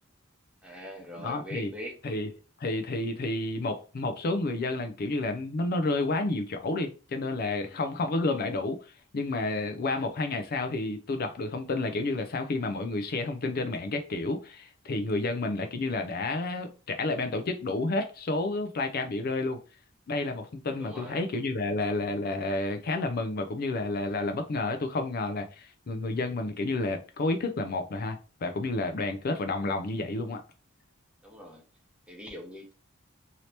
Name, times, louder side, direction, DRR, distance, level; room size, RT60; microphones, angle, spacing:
voice 1, 0.6-1.9 7.6-7.8 20.8-21.2 31.2-31.6 32.1-32.7, equal, 5° right, 0.8 m, -42 dB
voice 2, 1.2-1.7 2.0-2.3 2.6-19.6 20.1-30.4, left 2 dB, 45° left, 0.4 m, -30 dB
2.8 x 2.8 x 3.2 m
head